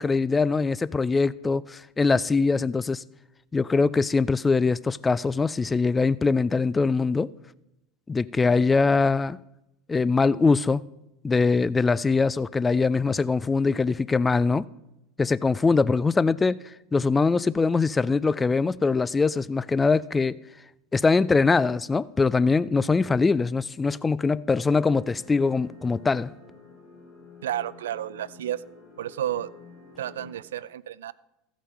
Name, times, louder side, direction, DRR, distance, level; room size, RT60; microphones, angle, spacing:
voice 1, 0.0-3.0 3.5-7.3 8.1-9.4 9.9-10.8 11.2-14.7 15.2-20.4 20.9-26.3, left 4 dB, 15° left, 0.3 m, -22 dB
sound 1, 24.5-30.3, left 4 dB, 80° left, 2.9 m, -49 dB
voice 2, 27.4-28.6 29.0-29.5 30.0-31.1, right 11 dB, 80° right, 0.3 m, -31 dB
15.0 x 5.1 x 5.6 m
hypercardioid pair, 90°, 0 cm